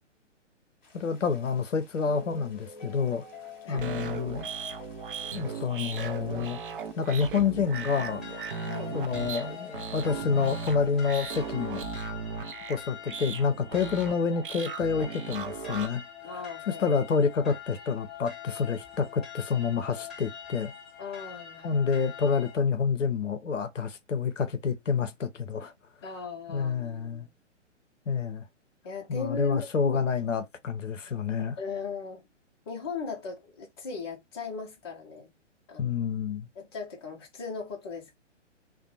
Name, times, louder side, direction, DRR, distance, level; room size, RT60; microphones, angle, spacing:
sound 1, 0.8-11.6, left 4 dB, 40° left, 0.9 m, -48 dB
voice 1, 0.9-3.3 3.7-4.5 5.3-6.6 7.0-8.2 8.9-11.8 12.7-16.0 16.7-20.7 21.6-25.7 26.5-27.3 28.1-28.4 29.1-31.6 35.8-36.5, left 5 dB, 80° left, 0.6 m, -28 dB
sound 2, 3.7-15.9, right 6 dB, 45° right, 0.4 m, -37 dB
sound 3, 7.7-22.6, left 9 dB, ahead, 0.8 m, -45 dB
voice 2, 8.6-9.0 16.2-16.8 21.0-21.7 26.0-27.3 28.8-30.1 31.6-32.2 32.7-35.3 35.7-36.0 36.6-38.2, left 4 dB, 20° left, 0.5 m, -38 dB
2.5 x 2.1 x 2.7 m
figure-of-eight pair, 125°, 37 cm